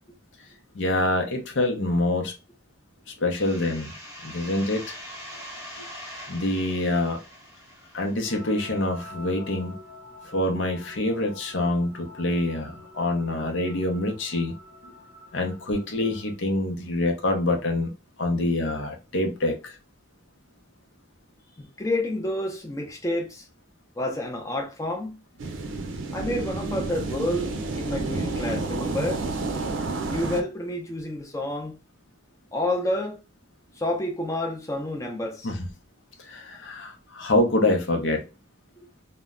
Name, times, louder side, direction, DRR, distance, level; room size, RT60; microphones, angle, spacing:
voice 1, 0.7-2.3 3.2-3.9 4.2-5.0 6.3-7.2 7.9-9.8 10.2-14.5 15.3-17.9 18.2-19.7 35.4-35.6 36.2-38.2, left 2 dB, 75° left, 0.6 m, -26 dB
sound 1, 3.4-8.9, equal, 15° right, 1.0 m, -43 dB
sound 2, 8.2-16.3, left 2 dB, 55° left, 1.0 m, -46 dB
voice 2, 21.6-23.5 24.0-25.2 26.1-29.3 30.1-31.8 32.5-33.2 33.8-35.5, left 1 dB, 15° left, 0.5 m, -29 dB
sound 3, 25.4-30.4, right 3 dB, 90° right, 0.5 m, -30 dB
2.1 x 2.0 x 3.6 m
head